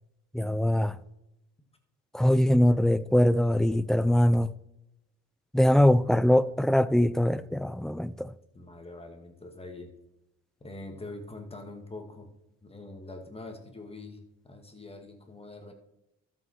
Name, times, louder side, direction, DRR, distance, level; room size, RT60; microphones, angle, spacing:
voice 1, 0.3-1.0 2.1-4.5 5.5-8.3, left 1 dB, ahead, 0.4 m, -22 dB
voice 2, 8.5-9.9 10.6-12.3 12.6-15.7, left 2 dB, 20° left, 2.0 m, -44 dB
12.5 x 7.2 x 4.5 m
cardioid pair, 90°, 30 cm